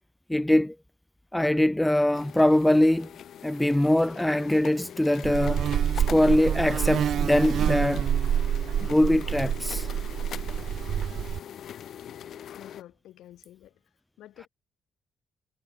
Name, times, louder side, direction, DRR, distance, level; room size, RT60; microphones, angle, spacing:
voice 1, 0.3-0.8 1.3-3.1 3.4-5.7 6.1-8.1 8.8-9.9, left 1 dB, 5° left, 0.4 m, -22 dB
sound 1, 2.1-12.8, left 10 dB, 65° left, 1.6 m, -42 dB
Buzz, 5.2-11.4, right 9 dB, 65° right, 0.5 m, -27 dB
voice 2, 12.5-13.8 14.2-14.5, left 13 dB, 80° left, 7.8 m, -50 dB
cardioid pair, 90°, 0 cm